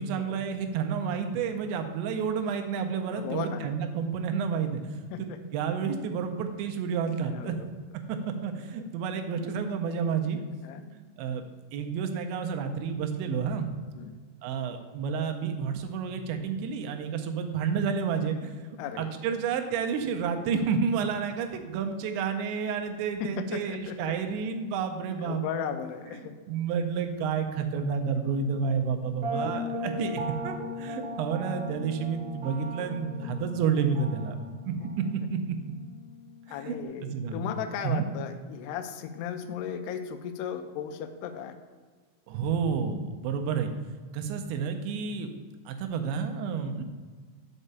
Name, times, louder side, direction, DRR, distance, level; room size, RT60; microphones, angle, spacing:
voice 1, 0.0-4.9 5.2-7.6 8.1-10.4 11.0-11.4 11.7-13.7 14.4-18.5 19.0-25.4 26.5-34.4 34.7-34.8 35.1-35.4 36.6-37.4 37.8-38.0 42.3-43.7 44.1-45.3 45.7-46.8, right 6 dB, 85° right, 5 dB, 3.0 m, -30 dB
voice 2, 3.1-3.7 5.1-5.4 7.2-7.7 10.6-11.0 14.0-14.2 18.8-19.1 23.4-24.2 25.2-26.4 29.5-29.8 33.2-33.3 34.8-34.9 36.5-41.6, left 8 dB, 80° left, 8 dB, 2.5 m, -36 dB
sound 1, 29.2-36.8, left 1 dB, 60° right, 2.6 m, -38 dB
6.0 x 5.5 x 6.6 m, 1.5 s
omnidirectional pair, 5.1 m